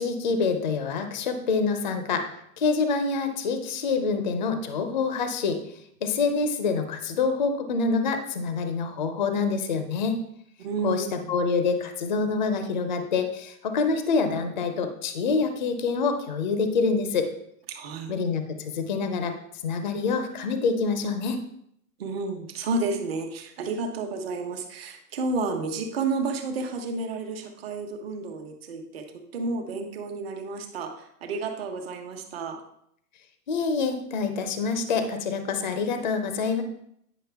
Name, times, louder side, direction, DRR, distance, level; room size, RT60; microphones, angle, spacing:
voice 1, 0.0-2.2 2.6-5.6 6.0-10.2 10.8-17.3 18.1-19.3 19.6-21.4 33.5-36.6, left 4 dB, 30° left, 7 dB, 0.5 m, -26 dB
voice 2, 10.6-11.3 17.7-18.2 22.0-29.1 29.3-32.6, right 3 dB, 40° right, 3 dB, 1.2 m, -31 dB
9.7 x 6.0 x 3.4 m, 0.72 s
hypercardioid pair, 175°, 47 cm